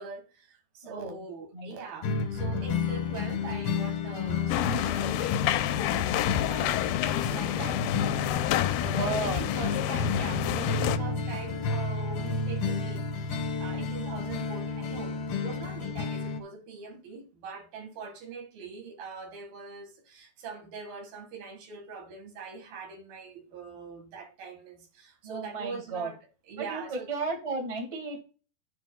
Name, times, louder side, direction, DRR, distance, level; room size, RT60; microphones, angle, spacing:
voice 1, 0.0-26.2 26.5-27.1, right 5 dB, 70° right, 3.5 m, -43 dB
voice 2, 0.8-1.2 1.5-1.7 8.9-9.4 25.2-26.1 26.6-28.2, right 3 dB, 30° right, 0.6 m, -34 dB
sound 1, 2.0-16.4, left 5 dB, 65° left, 1.4 m, -31 dB
sound 2, 4.5-11.0, left 13 dB, 85° left, 2.4 m, -29 dB
11.0 x 9.3 x 2.3 m
omnidirectional pair, 4.4 m